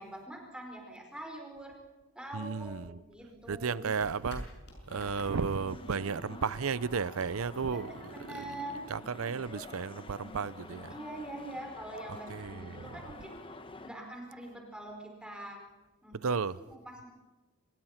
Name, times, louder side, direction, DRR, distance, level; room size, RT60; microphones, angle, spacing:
voice 1, 0.0-1.7 2.1-4.0 7.6-8.9 10.9-13.4 13.8-15.6 16.0-16.2 16.5-17.1, right 1 dB, 5° right, 4.7 m, -44 dB
voice 2, 2.3-3.0 3.5-4.6 4.9-8.5 8.9-10.9 12.3-13.0 16.1-16.6, right 5 dB, 70° right, 0.6 m, -34 dB
sound 1, 2.5-8.4, left 1 dB, 55° left, 6.5 m, -50 dB
sound 2, 4.9-13.9, left 2 dB, 25° left, 1.1 m, -48 dB
26.0 x 20.0 x 5.9 m
head